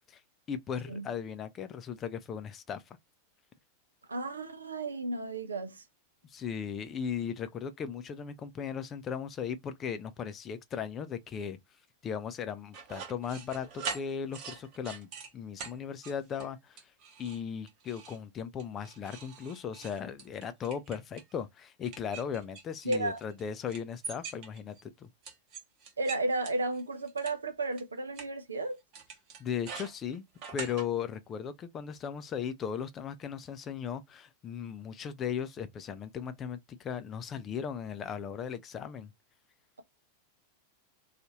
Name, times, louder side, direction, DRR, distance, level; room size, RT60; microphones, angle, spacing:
voice 1, 0.5-3.0 6.2-11.6 12.0-16.9 17.2-25.1 29.4-30.3 30.5-39.1, left 7 dB, 25° left, 0.5 m, -37 dB
voice 2, 4.1-5.8 22.8-23.2 26.0-28.8, right 2 dB, 75° right, 0.5 m, -33 dB
sound 1, 12.7-15.3 15.6-15.7 16.0-16.5 16.8-17.4 17.7-18.2 18.6-21.3 21.9-23.4 23.7-24.8 25.2-27.3 27.8-27.9 28.2-28.3 28.9-30.9, right 5 dB, 40° right, 1.0 m, -43 dB
2.6 x 2.4 x 2.9 m
figure-of-eight pair, 90°, 0 cm